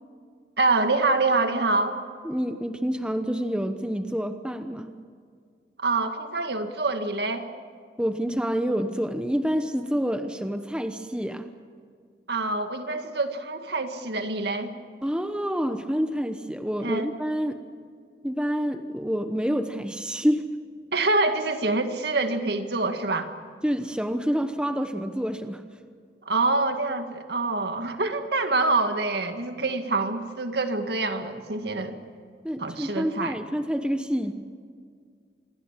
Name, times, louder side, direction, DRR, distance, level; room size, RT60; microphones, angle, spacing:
voice 1, 0.6-2.0 5.8-7.5 12.3-14.7 16.8-17.1 20.9-23.3 26.3-32.0 32.6-33.3, right 3 dB, 70° right, 7 dB, 1.9 m, -26 dB
voice 2, 2.2-4.9 8.0-11.5 15.0-17.6 18.2-20.5 23.6-25.6 32.4-34.3, equal, 5° right, 7 dB, 0.9 m, -27 dB
27.0 x 21.5 x 7.5 m, 2.1 s
head